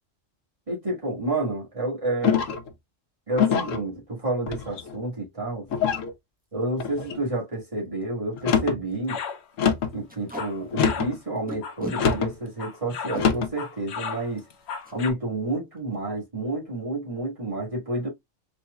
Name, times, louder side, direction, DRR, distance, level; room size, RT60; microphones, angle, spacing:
voice 1, 0.7-2.4 3.3-5.7 6.5-9.2 9.9-14.4 14.9-18.1, right 2 dB, 25° right, 1.6 m, -29 dB
sound 1, 2.2-2.7 3.4-3.8 4.5-5.0 5.7-6.1 6.8-7.2 8.3-8.8 9.6-10.0 10.7-11.2 12.0-12.3 13.1-13.5, left 7 dB, 85° left, 1.1 m, -24 dB
Packing tape duct tape, 6.4-6.6 7.1-7.2 7.4-7.5 8.0-8.1 8.4-8.6 8.9-9.1 10.1-10.5 11.5-12.0 12.9-13.3 14.8-15.0 15.3-15.5 15.8-16.2, right 1 dB, 10° right, 0.9 m, -37 dB
sound 2, 9.1-9.4 10.1-11.2 11.6-13.3 13.6-15.1, left 6 dB, 65° left, 0.9 m, -34 dB
4.2 x 3.1 x 2.3 m
omnidirectional pair, 1.3 m